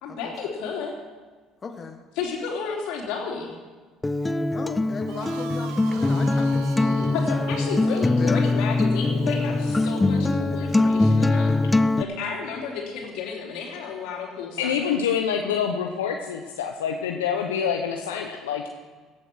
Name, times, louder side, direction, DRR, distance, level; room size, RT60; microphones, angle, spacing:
voice 1, 0.0-0.9 2.1-3.6 7.1-14.7, left 5 dB, 70° left, 0 dB, 3.3 m, -32 dB
voice 2, 1.6-2.0 4.5-7.2 8.2-8.4, left 5 dB, 35° left, 5 dB, 1.2 m, -35 dB
Acoustic guitar, 4.0-12.0, left 2 dB, 15° left, 0.6 m, -22 dB
sound 1, 5.0-10.6, right 9 dB, 75° right, 0.8 m, -41 dB
voice 3, 14.6-18.7, left 7 dB, 90° left, 3 dB, 0.9 m, -26 dB
16.5 x 8.8 x 6.2 m, 1.4 s
hypercardioid pair, 70°, 0 cm